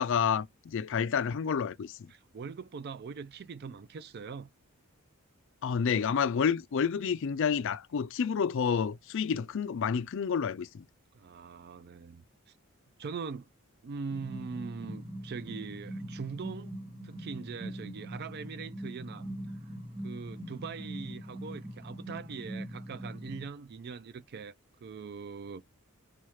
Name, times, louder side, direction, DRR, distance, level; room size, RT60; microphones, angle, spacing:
voice 1, 0.0-2.0 5.6-10.8, left 6 dB, 60° left, 0.4 m, -29 dB
voice 2, 2.1-4.5 11.1-12.2 13.0-13.5 13.8-19.3 20.0-24.5 24.8-25.6, right 5 dB, 45° right, 0.3 m, -42 dB
sound 1, 14.1-23.5, right 1 dB, 25° right, 0.9 m, -42 dB
4.3 x 2.4 x 4.7 m
head